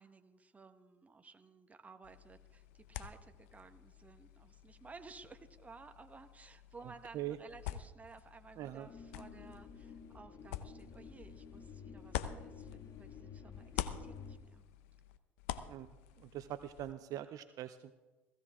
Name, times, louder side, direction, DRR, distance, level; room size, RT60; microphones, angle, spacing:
voice 1, 0.0-14.6, right 4 dB, 20° right, 7 dB, 1.4 m, -56 dB
sound 1, 2.0-13.2 13.5-16.9, left 12 dB, 75° left, 0.8 m, -47 dB
voice 2, 8.6-8.9 15.7-15.9 16.2-17.9, right 13 dB, 55° right, 12 dB, 0.6 m, -42 dB
sound 2, 8.8-14.4, left 6 dB, 50° left, 1.7 m, -51 dB
16.5 x 15.5 x 3.7 m, 1.2 s
hypercardioid pair, 80°, 7 cm